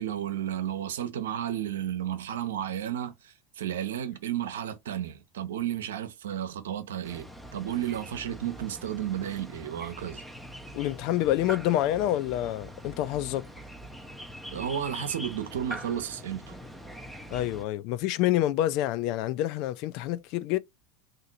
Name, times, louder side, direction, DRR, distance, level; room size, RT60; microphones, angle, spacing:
voice 1, 0.0-10.2 14.5-16.5, right 10 dB, 80° right, 0.7 m, -33 dB
sound 1, 7.0-17.6, equal, 5° left, 0.7 m, -43 dB
voice 2, 10.7-13.5 17.3-20.6, left 13 dB, 60° left, 0.3 m, -27 dB
2.8 x 2.5 x 3.9 m
hypercardioid pair, 90°, 0 cm